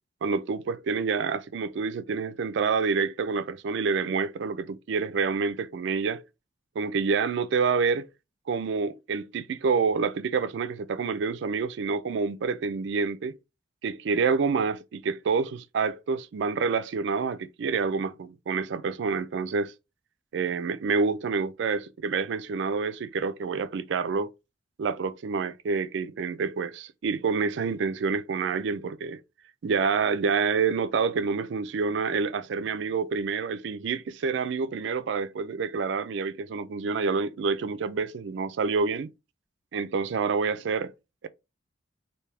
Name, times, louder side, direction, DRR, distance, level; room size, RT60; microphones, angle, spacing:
voice 1, 0.2-6.2 6.8-8.1 8.5-13.3 13.8-19.7 20.3-24.3 24.8-29.2 29.6-39.1 39.7-40.9, right 5 dB, 65° right, 0.4 m, -28 dB
3.4 x 2.7 x 3.2 m
head